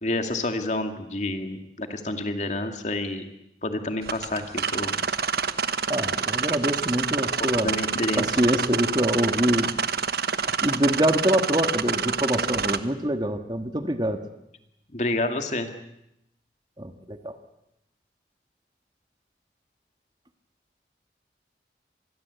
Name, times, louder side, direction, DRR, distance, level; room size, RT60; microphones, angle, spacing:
voice 1, 0.0-3.3 3.6-4.9 7.6-8.3 14.9-15.7, left 2 dB, 40° left, 6 dB, 2.3 m, -29 dB
sound 1, 4.0-12.8, right 6 dB, 60° right, 1.1 m, -27 dB
voice 2, 5.9-7.7 8.1-9.7 10.6-14.2 16.8-17.3, equal, 25° right, 7 dB, 1.6 m, -25 dB
26.0 x 21.0 x 8.2 m, 0.82 s
head